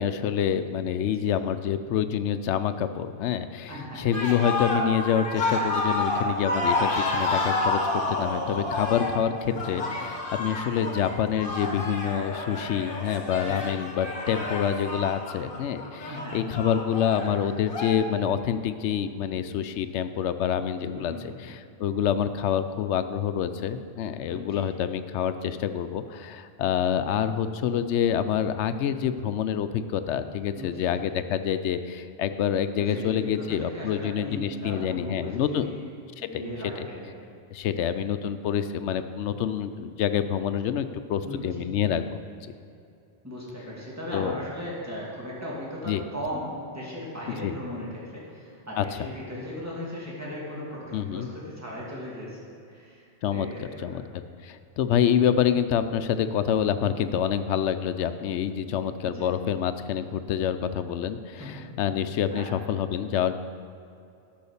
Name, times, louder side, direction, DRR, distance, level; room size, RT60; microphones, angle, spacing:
voice 1, 0.0-35.8 36.3-36.5 36.8-36.9 37.5-42.0 42.4-42.5 44.1-44.3 45.9-46.0 47.4-47.5 48.8-49.1 50.9-51.3 53.2-61.4 61.8-63.4, left 9 dB, 75° left, 11 dB, 0.9 m, -27 dB
voice 2, 3.7-4.0 9.5-9.8 13.5-13.7 16.1-16.4 20.9-21.4 24.3-24.6 30.5-30.9 32.8-35.8 36.2-37.1 41.2-41.7 43.2-52.4 52.7-54.0 58.7-59.3 61.4-61.6 62.3-62.5, equal, 15° right, -6 dB, 2.3 m, -37 dB
sound 1, 4.1-17.9, left 2 dB, 50° left, 1.5 m, -29 dB
10.5 x 5.7 x 7.0 m, 2.6 s
omnidirectional pair, 1.2 m